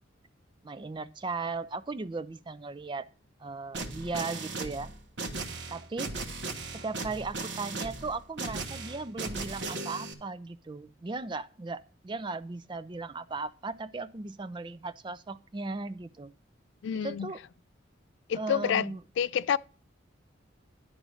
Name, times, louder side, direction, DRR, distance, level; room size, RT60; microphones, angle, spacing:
voice 1, 0.6-3.1 3.4-4.9 5.7-6.3 6.7-16.3 16.9-17.4 18.3-19.0, right 3 dB, 25° right, 0.4 m, -37 dB
sound 1, 3.7-10.1, right 3 dB, 60° right, 1.3 m, -37 dB
voice 2, 16.8-17.3 18.3-18.9 19.2-19.6, left 8 dB, 65° left, 0.3 m, -28 dB
11.0 x 3.9 x 6.3 m
head